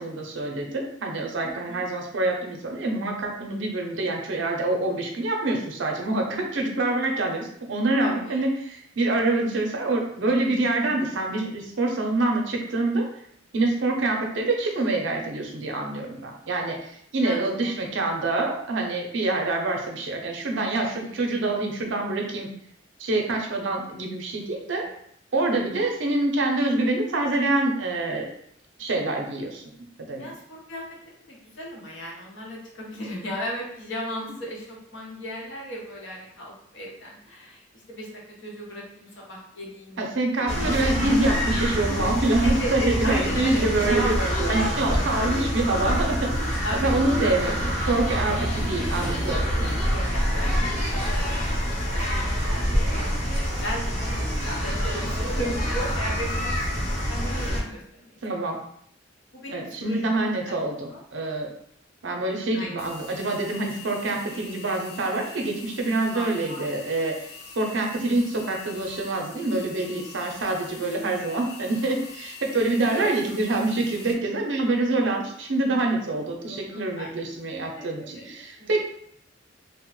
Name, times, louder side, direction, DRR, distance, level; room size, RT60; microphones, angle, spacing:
voice 1, 0.0-13.1 13.5-22.5 23.0-24.8 25.3-28.3 28.8-29.6 30.0-30.3 40.0-44.1 44.5-49.9 58.2-58.6 59.5-61.5 62.0-67.3 67.6-78.8, right 2 dB, 70° right, 2 dB, 0.5 m, -26 dB
voice 2, 1.4-1.9 8.0-8.4 17.2-17.7 20.9-21.1 24.7-24.9 25.7-25.9 30.2-30.8 31.3-37.6 37.9-38.1 38.4-40.0 42.4-44.9 45.2-45.7 46.6-47.5 49.9-51.2 51.9-58.5 59.3-60.5 60.9-61.0 62.5-62.7 66.1-66.6 72.9-73.1 76.4-76.6 76.9-77.1 77.8-78.7, equal, 75° left, -2 dB, 0.8 m, -35 dB
sound 1, 40.5-57.6, equal, 35° left, 0.8 m, -26 dB
sound 2, 62.8-74.1, left 4 dB, 55° left, 0.4 m, -44 dB
2.9 x 2.1 x 3.0 m, 0.70 s
head